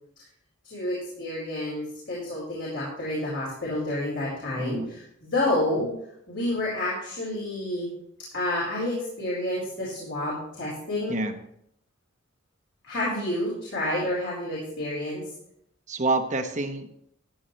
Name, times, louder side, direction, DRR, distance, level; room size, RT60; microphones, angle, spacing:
voice 1, 0.6-5.9 6.3-7.9 8.3-11.2 12.8-15.3, left 1 dB, 60° left, -7 dB, 4.5 m, -29 dB
voice 2, 4.6-4.9 11.1-11.4 15.9-17.0, right 3 dB, 40° right, 7 dB, 1.0 m, -28 dB
14.0 x 9.3 x 3.3 m, 0.72 s
head